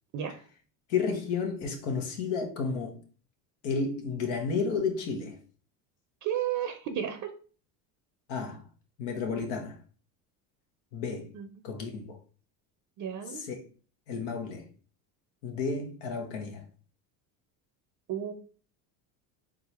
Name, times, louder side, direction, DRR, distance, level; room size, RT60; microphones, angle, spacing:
voice 1, 0.9-3.0 3.6-5.4 8.3-8.6 9.0-9.7 10.9-11.3 11.6-12.2 13.3-13.6 14.1-14.6 15.4-16.6, left 5 dB, 85° left, 1.3 m, -32 dB
voice 2, 6.2-7.3 11.3-11.5 13.0-13.4 18.1-18.3, right 9 dB, 50° right, 0.6 m, -32 dB
3.8 x 3.7 x 2.9 m
supercardioid pair, 100°, 42 cm